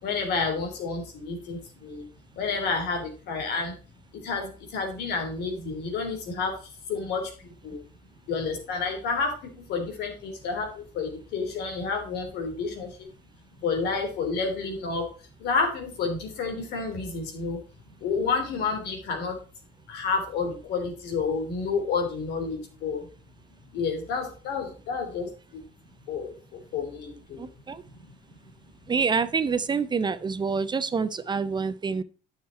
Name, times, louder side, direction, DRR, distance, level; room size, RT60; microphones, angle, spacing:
voice 1, 0.0-2.0 2.3-3.8 4.1-7.8 8.3-13.1 13.6-15.1 15.4-17.6 17.9-19.4 19.9-23.1 23.7-25.6 26.1-27.5 27.9-28.1, left 4 dB, 80° left, 3 dB, 3.4 m, -30 dB
voice 2, 27.4-27.8 28.9-32.0, right 5 dB, 25° right, 14 dB, 0.6 m, -27 dB
10.0 x 6.6 x 4.4 m, 0.35 s
cardioid pair, 110°, 17 cm